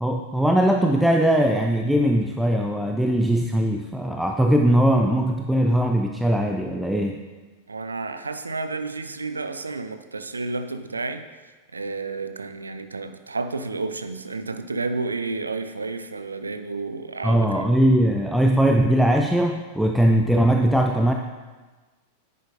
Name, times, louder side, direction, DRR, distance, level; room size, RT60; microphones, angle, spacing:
voice 1, 0.0-7.2 17.2-21.1, right 1 dB, ahead, 2 dB, 0.5 m, -20 dB
voice 2, 7.7-17.7, right 3 dB, 75° right, 10 dB, 0.5 m, -31 dB
10.0 x 9.2 x 2.6 m, 1.3 s
figure-of-eight pair, 90°, 0 cm